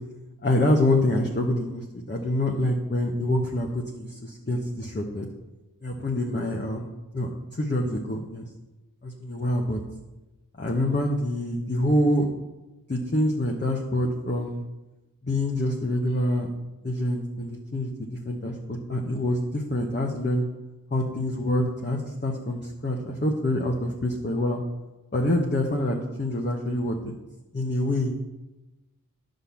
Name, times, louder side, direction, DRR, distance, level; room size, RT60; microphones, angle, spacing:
voice 1, 0.4-5.3 5.8-8.5 9.0-9.8 10.6-12.3 12.9-14.6 15.2-16.5 16.8-20.5 20.9-24.6 25.1-27.1 27.5-28.1, left 1 dB, 30° left, -1 dB, 1.1 m, -26 dB
9.9 x 3.9 x 7.0 m, 1.0 s
wide cardioid pair, 40°, 34 cm